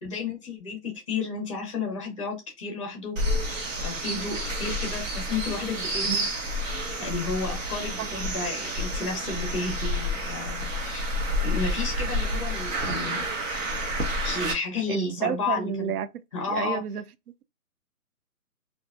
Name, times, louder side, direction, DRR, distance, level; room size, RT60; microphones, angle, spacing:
voice 1, 0.0-3.1 3.8-6.2 7.0-11.1 11.4-13.3 14.2-15.9 16.3-16.8, left 4 dB, 20° left, 0.7 m, -32 dB
sound 1, 3.2-14.5, equal, 55° right, 1.0 m, -29 dB
voice 2, 14.9-16.1 16.5-17.0, right 8 dB, 75° right, 0.5 m, -30 dB
2.5 x 2.1 x 2.4 m
hypercardioid pair, 155°, 45 cm